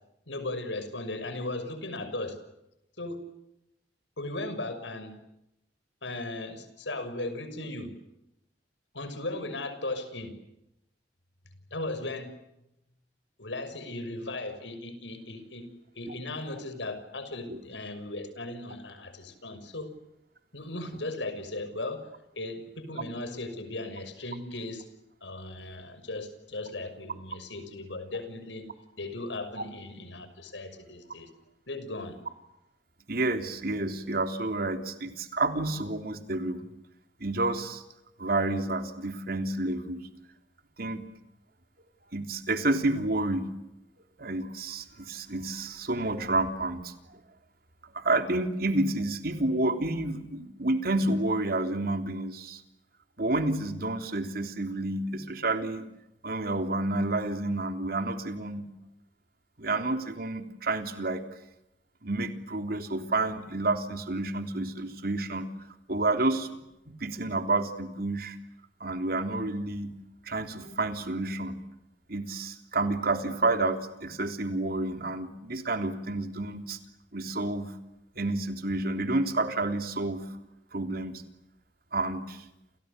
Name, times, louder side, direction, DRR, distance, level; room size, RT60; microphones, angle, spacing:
voice 1, 0.3-2.4 3.0-3.2 4.2-5.1 6.0-7.9 8.9-10.3 11.7-12.3 13.4-15.7 15.9-19.9 20.5-22.1 22.3-24.8 25.2-28.7 29.0-31.3 31.7-32.2, left 2 dB, 90° left, 10 dB, 6.2 m, -37 dB
voice 2, 33.1-36.6 37.2-37.8 38.2-40.1 40.8-41.1 42.1-43.5 44.2-47.2 47.9-52.6 53.2-55.9 56.2-58.7 59.6-61.2 62.0-65.5 65.9-66.6 67.0-68.4 68.8-70.0 70.2-71.6 72.1-76.8 77.1-77.7 78.1-80.3 80.7-81.2 81.9-82.4, right 2 dB, 55° right, 7 dB, 3.5 m, -29 dB
30.0 x 29.0 x 6.9 m, 0.87 s
head